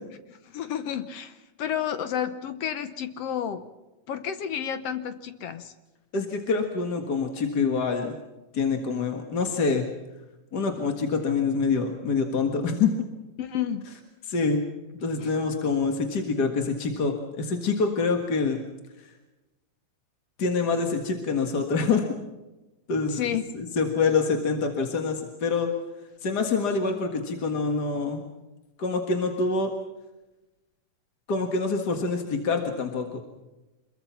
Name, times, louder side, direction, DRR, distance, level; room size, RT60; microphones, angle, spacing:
voice 1, 0.3-3.7 4.1-5.7 13.4-13.9 15.2-15.3 23.1-23.4, left 9 dB, 70° left, 11 dB, 1.5 m, -31 dB
voice 2, 6.1-8.1 8.5-9.8 10.5-12.9 14.3-14.6 15.0-18.6 20.4-22.0 22.9-23.2 23.5-25.7 26.2-28.2 28.8-29.7 31.3-33.2, left 4 dB, 40° left, 4 dB, 1.6 m, -26 dB
26.0 x 22.0 x 5.8 m, 1.0 s
omnidirectional pair, 3.9 m